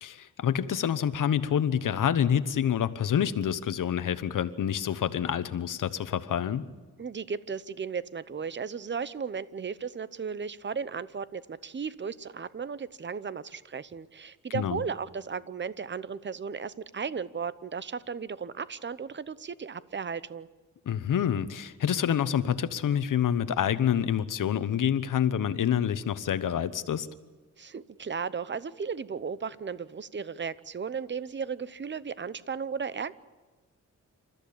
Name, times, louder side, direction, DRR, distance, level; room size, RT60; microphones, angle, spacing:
voice 1, 0.0-6.6 14.5-14.8 20.9-27.1, left 9 dB, 85° left, 13 dB, 1.1 m, -27 dB
voice 2, 7.0-20.5 27.6-33.1, right 6 dB, 35° right, 16 dB, 0.8 m, -35 dB
28.5 x 14.0 x 8.7 m, 1.3 s
cardioid pair, 95°, 31 cm